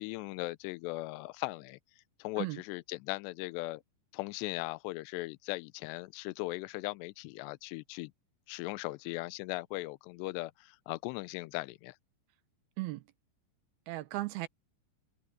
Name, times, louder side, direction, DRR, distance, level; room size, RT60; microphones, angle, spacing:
voice 1, 0.0-1.8 2.2-3.8 4.1-8.1 8.5-12.0, left 21 dB, 85° left, 2.5 m, -38 dB
voice 2, 13.9-14.5, right 18 dB, 75° right, 2.3 m, -36 dB
omnidirectional pair, 5.5 m